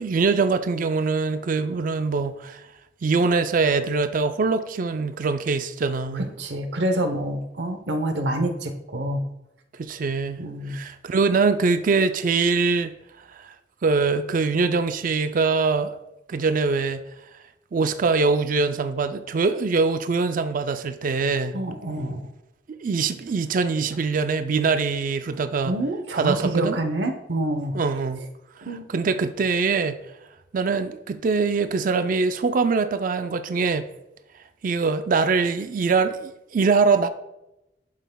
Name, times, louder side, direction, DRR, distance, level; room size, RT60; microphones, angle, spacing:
voice 1, 0.0-2.6 3.0-6.3 9.8-12.9 13.4-13.5 13.8-15.9 16.3-17.0 17.7-21.5 22.7-25.7 26.1-26.8 27.7-28.2 28.9-30.0 30.5-33.9 34.6-37.1, right 4 dB, 50° right, 0.4 m, -23 dB
voice 2, 6.1-9.3 10.4-10.8 21.5-22.3 25.6-27.8 28.6-28.8, right 1 dB, 75° right, 0.9 m, -27 dB
11.0 x 5.6 x 2.3 m
head